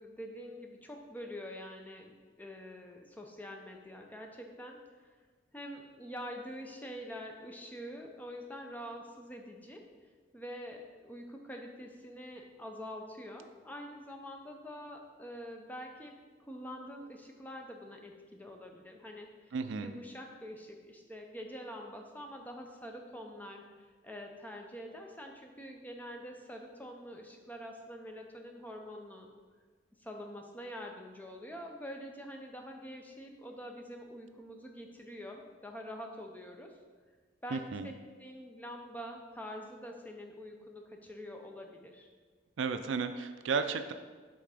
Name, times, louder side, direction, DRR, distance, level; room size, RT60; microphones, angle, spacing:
voice 1, 0.0-4.8 5.5-9.8 10.3-19.5 19.8-29.3 30.0-36.7 37.4-37.6 38.2-42.1, equal, 10° left, 2 dB, 0.5 m, -45 dB
voice 2, 19.5-19.9 37.5-37.9 42.6-43.9, right 5 dB, 90° right, 9 dB, 0.4 m, -33 dB
5.7 x 3.8 x 4.9 m, 1.4 s
head